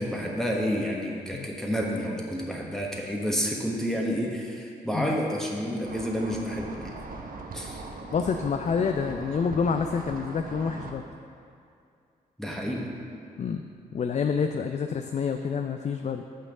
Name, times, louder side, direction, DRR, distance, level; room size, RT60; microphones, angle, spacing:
voice 1, 0.0-6.9 7.5-7.8 12.4-12.9, equal, ahead, -2 dB, 1.2 m, -29 dB
sound 1, 5.8-10.9, right 3 dB, 45° right, 0.9 m, -40 dB
voice 2, 8.1-11.0 13.4-13.6 13.9-16.2, left 6 dB, 35° left, 6 dB, 0.4 m, -28 dB
6.1 x 5.1 x 6.5 m, 2.4 s
hypercardioid pair, 45°, 19 cm